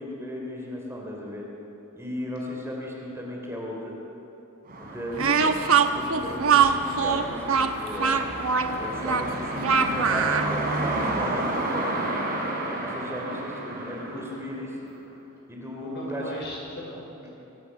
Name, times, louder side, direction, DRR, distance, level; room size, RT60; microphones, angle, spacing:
voice 1, 0.0-1.4 2.0-4.1 4.8-5.6 5.9-8.2 8.8-11.9 12.8-14.7 15.5-16.4 17.2-17.3, left 1 dB, 15° right, -1 dB, 3.4 m, -36 dB
sound 1, 4.7-14.9, right 2 dB, 45° right, 3.7 m, -31 dB
Speech, 5.2-10.5, right 6 dB, 80° right, 1.1 m, -22 dB
voice 2, 13.2-13.5 14.1-14.4 15.8-17.2, equal, 55° left, -2 dB, 5.4 m, -39 dB
24.0 x 17.0 x 6.5 m, 3.0 s
head